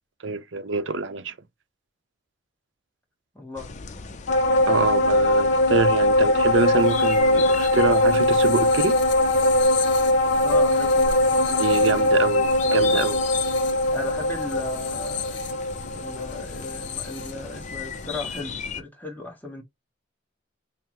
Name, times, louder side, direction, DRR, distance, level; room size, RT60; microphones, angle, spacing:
voice 1, 0.2-1.3 4.7-9.0 11.6-13.2, right 4 dB, 70° right, 0.6 m, -25 dB
voice 2, 3.3-3.7 10.4-12.2 12.7-13.0 13.9-15.4 15.9-19.6, left 3 dB, 10° left, 1.2 m, -37 dB
sound 1, 3.6-18.8, left 4 dB, 40° left, 0.6 m, -37 dB
sound 2, 4.3-18.0 18.4-18.5, left 1 dB, 65° left, 0.9 m, -21 dB
5.5 x 2.1 x 2.9 m
head